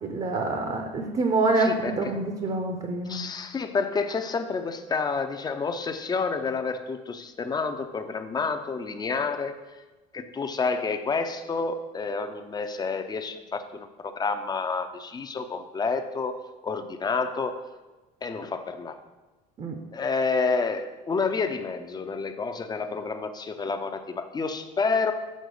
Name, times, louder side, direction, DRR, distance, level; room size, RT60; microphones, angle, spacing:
voice 1, 0.0-3.2 19.6-19.8, right 3 dB, 35° right, 4 dB, 0.8 m, -26 dB
voice 2, 1.6-2.0 3.0-9.6 10.1-16.4 16.6-17.6 18.2-19.0 19.9-25.1, left 4 dB, 20° left, 8 dB, 0.6 m, -29 dB
6.4 x 3.8 x 5.3 m, 1.1 s
supercardioid pair, 95°, 19 cm